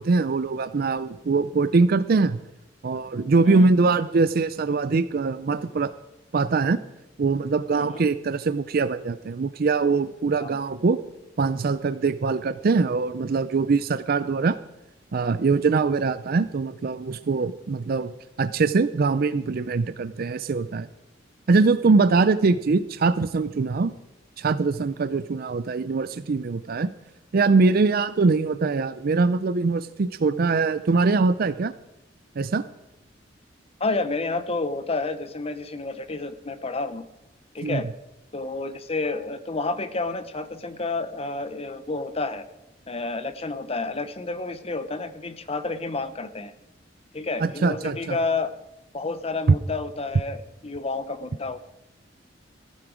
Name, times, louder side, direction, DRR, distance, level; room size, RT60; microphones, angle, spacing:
voice 1, 0.0-2.4 2.8-5.9 6.3-6.8 7.2-11.0 11.4-14.6 15.1-20.9 21.5-23.9 24.4-26.9 27.3-31.7 32.4-32.7 37.6-37.8 47.4-48.2, right 4 dB, 50° right, 13 dB, 0.4 m, -22 dB
voice 2, 7.7-8.0 10.4-10.6 33.8-37.0 37.5-37.8 38.3-42.4 42.9-46.5 47.1-48.5 48.9-51.6, left 3 dB, 35° left, 12 dB, 0.9 m, -30 dB
15.0 x 11.0 x 5.1 m, 0.91 s
head